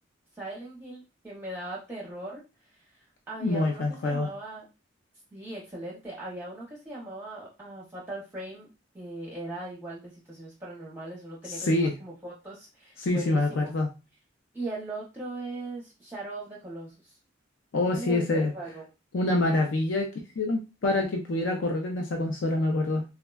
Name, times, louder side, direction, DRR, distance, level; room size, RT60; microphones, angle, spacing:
voice 1, 0.3-2.4 2.7-4.7 5.3-8.7 8.9-13.7 14.5-17.2 17.8-18.9, right 2 dB, 10° right, -5 dB, 0.6 m, -39 dB
voice 2, 3.4-4.3 11.6-11.9 13.0-13.9 17.7-18.5 19.1-20.1 20.4-23.0, left 2 dB, 75° left, 2 dB, 0.5 m, -26 dB
3.4 x 2.1 x 2.3 m, 0.29 s
head